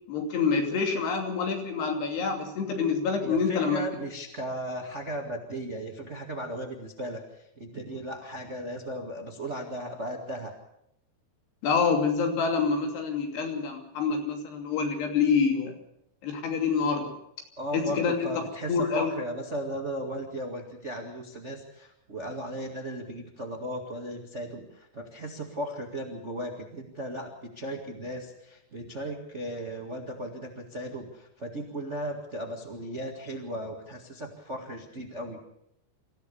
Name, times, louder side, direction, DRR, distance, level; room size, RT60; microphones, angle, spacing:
voice 1, 0.1-3.8 11.6-15.7 16.2-17.1 17.7-18.3 18.7-19.1, left 5 dB, 80° left, 3 dB, 4.9 m, -26 dB
voice 2, 3.2-10.5 17.6-35.4, right 1 dB, 35° right, 2 dB, 1.1 m, -36 dB
25.0 x 15.0 x 6.9 m, 0.78 s
omnidirectional pair, 4.7 m